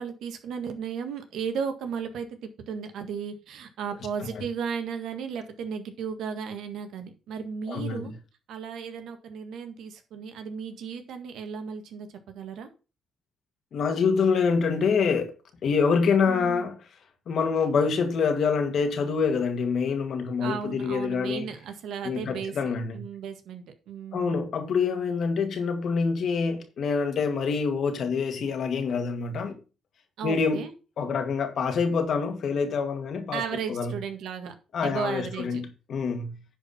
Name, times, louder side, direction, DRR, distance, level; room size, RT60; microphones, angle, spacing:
voice 1, 0.0-2.3 2.7-8.1 8.5-12.7 16.3-16.6 20.4-22.5 22.9-24.4 30.2-30.7 33.3-34.5 34.8-35.6, right 6 dB, 80° right, 1.7 m, -35 dB
voice 2, 7.7-8.1 13.7-15.3 15.6-16.8 17.3-21.5 22.0-23.0 24.1-29.6 30.2-30.6 31.0-33.4 33.7-34.0 34.7-36.4, left 5 dB, 60° left, 2.1 m, -26 dB
10.0 x 4.9 x 5.7 m
cardioid pair, 90°, 0 cm